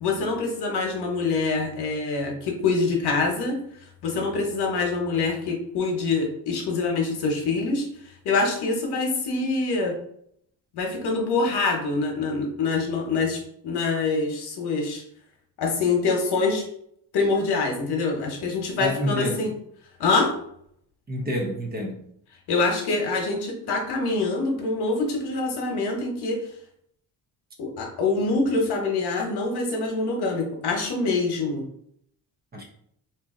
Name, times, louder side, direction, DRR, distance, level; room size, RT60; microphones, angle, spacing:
voice 1, 0.0-3.5 4.0-7.9 8.2-9.9 10.7-15.0 15.6-16.6 17.1-19.5 20.0-20.3 22.5-26.4 27.6-31.6, left 3 dB, 80° left, 2 dB, 1.0 m, -25 dB
voice 2, 18.8-19.4 21.1-22.0 32.5-32.6, equal, 25° right, 1 dB, 0.7 m, -28 dB
2.9 x 2.7 x 3.6 m, 0.69 s
cardioid pair, 125°, 38 cm